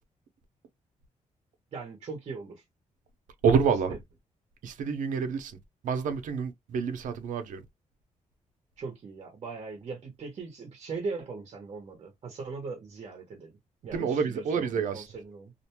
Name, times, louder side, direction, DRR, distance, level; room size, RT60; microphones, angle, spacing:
voice 1, 1.7-2.6 3.9-4.0 8.8-13.5 13.8-15.5, right 4 dB, 45° right, 0.7 m, -39 dB
voice 2, 3.4-4.0 4.6-5.6 5.8-7.6 13.9-15.1, right 6 dB, 75° right, 0.6 m, -28 dB
2.5 x 2.2 x 2.9 m
wide cardioid pair, 170°, 13 cm